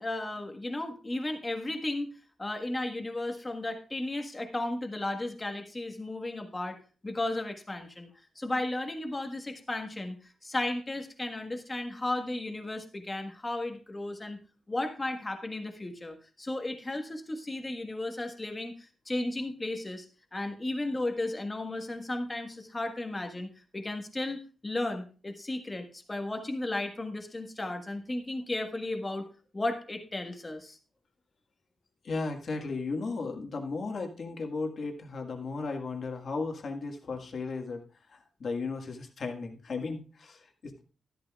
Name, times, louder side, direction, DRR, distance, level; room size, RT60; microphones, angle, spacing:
voice 1, 0.0-6.8 7.0-8.1 8.3-10.2 10.4-14.4 14.7-20.1 20.3-23.5 23.7-29.3 29.5-30.8, left 2 dB, 15° left, 5 dB, 1.4 m, -34 dB
voice 2, 32.0-37.8 38.1-40.8, left 4 dB, 45° left, 3 dB, 1.8 m, -35 dB
13.5 x 12.5 x 2.4 m, 0.36 s
wide cardioid pair, 180°, 0 cm